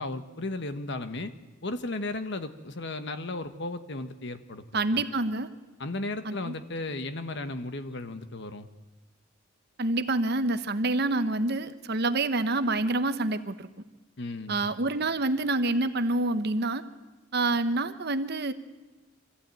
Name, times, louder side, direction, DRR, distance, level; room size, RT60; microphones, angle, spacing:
voice 1, 0.0-1.3 1.6-5.0 5.8-8.7 14.2-14.7, left 2 dB, 60° left, 10 dB, 1.3 m, -35 dB
voice 2, 4.7-5.5 6.2-6.5 9.8-13.7 14.5-16.8 17.3-18.5, right 2 dB, 55° right, 10 dB, 1.1 m, -27 dB
24.5 x 14.5 x 9.1 m, 1.2 s
head